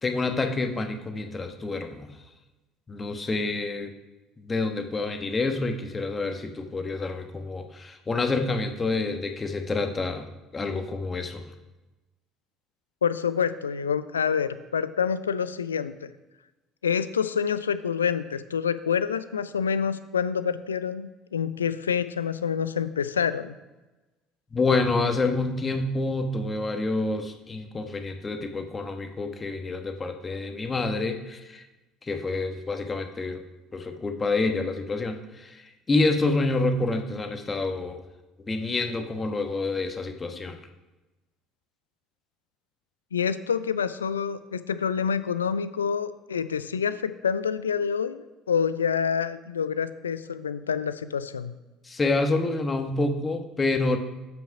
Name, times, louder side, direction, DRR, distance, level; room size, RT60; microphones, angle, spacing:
voice 1, 0.0-2.2 2.9-3.9 4.4-10.3 10.5-11.5 24.5-31.6 32.0-33.4 33.7-38.0 38.4-40.6 51.8-54.0, left 3 dB, 25° left, 6 dB, 1.1 m, -28 dB
voice 2, 13.0-16.1 16.8-23.5 43.1-51.5, left 7 dB, 85° left, 14 dB, 0.3 m, -27 dB
7.6 x 5.8 x 4.9 m, 1.1 s
figure-of-eight pair, 60°, 0 cm